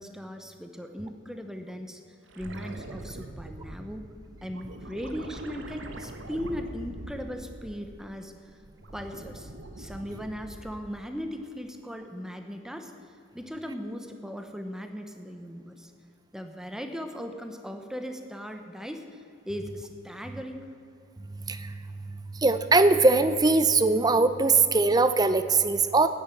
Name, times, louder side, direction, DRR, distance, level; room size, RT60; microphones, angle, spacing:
voice 1, 0.0-4.1 4.4-8.5 8.9-9.5 9.8-15.9 16.3-20.7, equal, 5° right, 6 dB, 0.9 m, -38 dB
sound 1, 2.3-8.1 8.5-11.0 13.4-13.5, right 1 dB, 65° right, 1.2 m, -43 dB
voice 2, 21.2-26.1, right 3 dB, 20° right, 11 dB, 0.6 m, -22 dB
10.0 x 9.8 x 9.2 m, 2.7 s
head